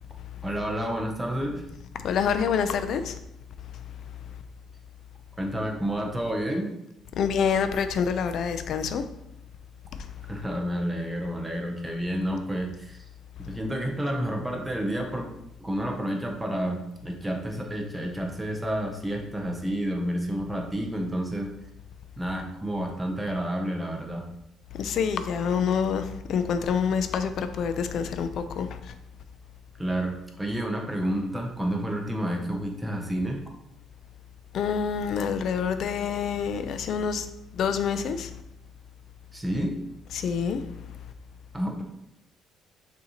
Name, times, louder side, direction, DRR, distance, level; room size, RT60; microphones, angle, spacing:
voice 1, 0.4-1.6 5.4-6.7 10.3-13.0 13.5-15.3 15.6-21.5 22.2-24.3 29.8-33.4 39.3-39.8 41.5-41.8, equal, 10° right, 1 dB, 0.7 m, -30 dB
voice 2, 2.0-3.2 7.2-9.0 24.7-28.7 34.5-37.3 37.5-38.3 40.1-40.6, left 6 dB, 60° left, 9 dB, 0.4 m, -27 dB
6.2 x 2.7 x 2.9 m, 0.85 s
cardioid pair, 130°, 0 cm